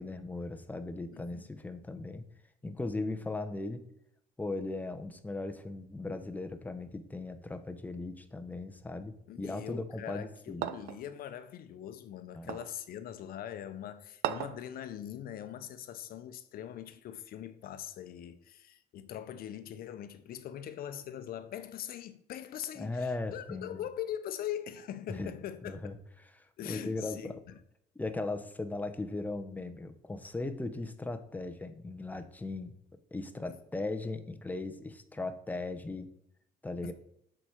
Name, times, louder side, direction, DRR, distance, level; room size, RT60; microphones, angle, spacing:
voice 1, 0.0-2.2 2.6-3.8 4.4-10.7 12.3-12.6 22.8-23.8 25.1-25.3 25.6-25.9 26.4-27.3 28.0-32.8 33.1-36.1 36.6-36.9, left 2 dB, 10° left, 0.7 m, -38 dB
voice 2, 1.1-1.5 9.3-25.8 26.6-27.4 33.5-33.6 36.8-36.9, left 10 dB, 60° left, 0.7 m, -42 dB
sound 1, 10.6-11.0 12.5-12.8 14.2-14.7, right 13 dB, 85° right, 0.4 m, -35 dB
6.9 x 4.9 x 4.4 m
cardioid pair, 110°, 17 cm